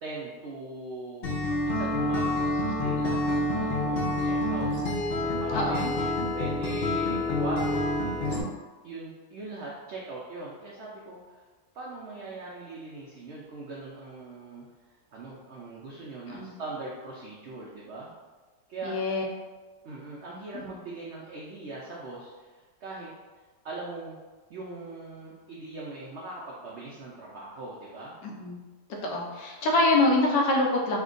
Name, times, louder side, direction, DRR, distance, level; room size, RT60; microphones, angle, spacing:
voice 1, 0.0-1.3 1.6-4.7 5.1-8.0 8.8-11.4 11.7-14.6 15.1-18.1 18.7-19.0 19.8-22.5 22.8-23.1 23.6-24.2 24.5-28.1, right 3 dB, 80° right, -4 dB, 0.6 m, -40 dB
Acoustic guitar, 1.2-8.4, left 1 dB, 70° left, 0.5 m, -27 dB
voice 2, 5.5-5.9 16.3-16.5 18.8-19.2 28.2-28.6 29.0-31.0, left 2 dB, 85° left, -1 dB, 1.3 m, -25 dB
3.3 x 2.2 x 3.7 m, 1.3 s
omnidirectional pair, 1.8 m